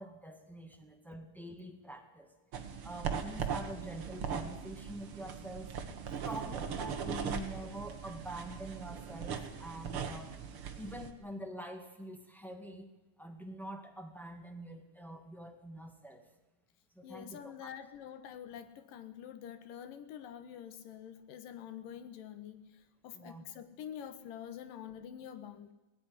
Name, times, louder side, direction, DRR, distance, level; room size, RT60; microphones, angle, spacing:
voice 1, 0.0-2.3 2.8-5.7 6.2-10.3 10.7-12.9 13.2-16.2 16.9-17.7 23.1-23.4, right 1 dB, ahead, 3 dB, 0.9 m, -45 dB
sound 1, 2.5-11.1, right 7 dB, 50° right, 2.0 m, -39 dB
voice 2, 17.0-22.6 23.0-25.7, left 9 dB, 75° left, 10 dB, 2.9 m, -46 dB
18.5 x 15.5 x 9.7 m, 1.1 s
omnidirectional pair, 4.0 m